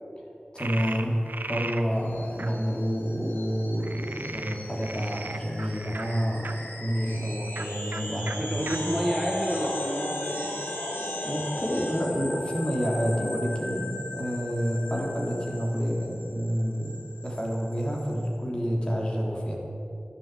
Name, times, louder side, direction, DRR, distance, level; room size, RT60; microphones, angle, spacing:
voice 1, 0.5-1.2 1.5-9.0 11.2-19.5, equal, 30° left, -2 dB, 3.3 m, -29 dB
Frog, 0.6-1.8 2.4-2.5 3.8-6.5 7.5-7.7 7.9-8.0 8.3-8.4 8.7-8.8 9.4-10.1, right 2 dB, 65° right, 1.0 m, -37 dB
sound 1, 2.1-18.3, left 1 dB, 90° left, 2.5 m, -38 dB
voice 2, 8.4-10.4, equal, ahead, -2 dB, 1.9 m, -29 dB
12.5 x 10.5 x 8.4 m, 2.8 s
wide cardioid pair, 55°, 3 cm